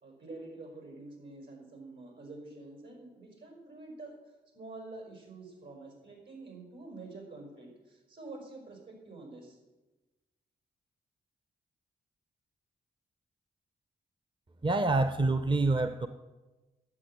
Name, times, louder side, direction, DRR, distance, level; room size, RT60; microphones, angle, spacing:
voice 1, 0.0-4.1 4.5-9.6, right 2 dB, 70° right, 2 dB, 5.5 m, -47 dB
voice 2, 14.6-16.1, right 2 dB, 25° right, 10 dB, 0.8 m, -26 dB
10.5 x 8.4 x 8.0 m, 1.2 s
supercardioid pair, 45°, 19 cm